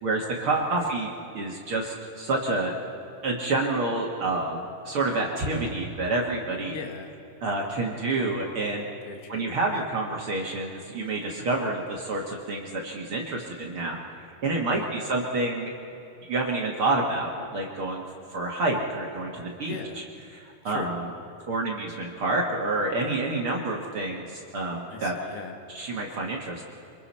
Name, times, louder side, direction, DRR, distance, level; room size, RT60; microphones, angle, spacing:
voice 1, 0.0-2.8 3.2-6.8 7.4-8.9 9.3-14.0 14.4-15.7 16.2-18.0 18.3-19.7 20.3-21.1 21.5-25.2 25.7-26.6, right 2 dB, 50° right, -1 dB, 1.9 m, -28 dB
voice 2, 6.7-7.2 9.0-9.4 14.7-15.0 19.6-20.1 20.7-20.9 24.9-25.5, left 5 dB, 85° left, 4 dB, 3.4 m, -39 dB
28.0 x 24.5 x 4.3 m, 2.8 s
omnidirectional pair, 4.2 m